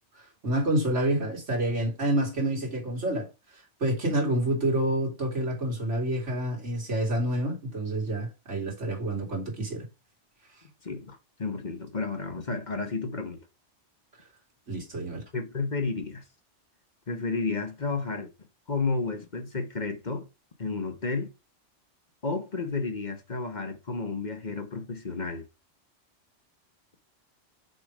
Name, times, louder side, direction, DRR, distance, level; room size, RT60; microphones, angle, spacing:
voice 1, 0.1-3.3 3.5-9.8 14.7-15.2, right 1 dB, 80° right, 3.1 m, -28 dB
voice 2, 10.8-13.4 15.3-16.2 17.1-18.3 18.7-20.3 20.6-21.3 22.2-25.4, left 4 dB, 40° left, 1.2 m, -32 dB
6.5 x 4.9 x 4.8 m
omnidirectional pair, 1.2 m